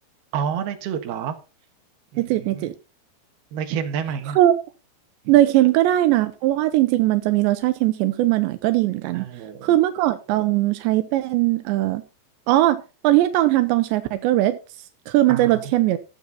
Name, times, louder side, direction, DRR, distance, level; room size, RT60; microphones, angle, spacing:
voice 1, 0.3-1.4 2.1-2.7 3.5-4.4 5.2-5.3 9.1-9.8 15.3-15.6, right 8 dB, 70° right, 5 dB, 3.4 m, -29 dB
voice 2, 2.2-2.7 4.4-4.5 5.3-9.3 9.6-12.0 12.5-14.6 15.1-16.0, right 15 dB, 85° right, 9 dB, 3.1 m, -19 dB
15.0 x 8.3 x 4.1 m, 0.32 s
omnidirectional pair, 5.0 m